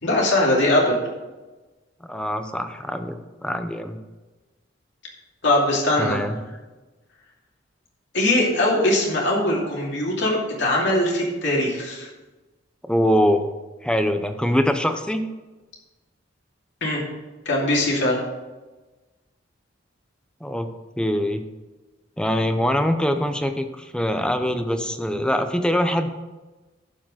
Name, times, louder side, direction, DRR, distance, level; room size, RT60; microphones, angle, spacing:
voice 1, 0.0-1.0 5.4-6.2 8.1-12.1 16.8-17.0 17.4-18.2, left 1 dB, 65° left, -2 dB, 2.7 m, -21 dB
voice 2, 2.0-4.0 6.0-6.4 12.9-13.5 13.8-15.3 20.4-20.7 21.0-21.5 22.2-26.1, equal, 5° left, 7 dB, 0.6 m, -23 dB
12.0 x 4.9 x 6.2 m, 1.2 s
head